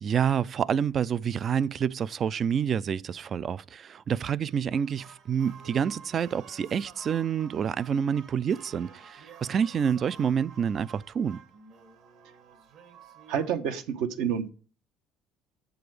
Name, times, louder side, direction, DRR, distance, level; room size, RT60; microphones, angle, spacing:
voice 1, 0.0-11.4, right 7 dB, 35° right, 0.3 m, -28 dB
sound 1, 4.7-13.5, right 6 dB, 55° right, 1.5 m, -51 dB
voice 2, 13.3-14.5, right 8 dB, 80° right, 1.2 m, -29 dB
7.7 x 7.0 x 4.8 m
cardioid pair, 135°, 0 cm